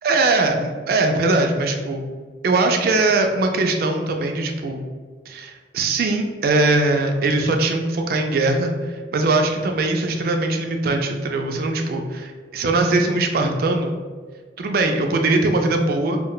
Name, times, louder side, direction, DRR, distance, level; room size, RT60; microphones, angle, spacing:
voice 1, 0.0-2.0 2.4-4.8 5.3-12.2 12.5-14.0 14.6-16.2, right 2 dB, 55° right, 4 dB, 0.3 m, -21 dB
2.2 x 2.1 x 3.8 m, 1.5 s
head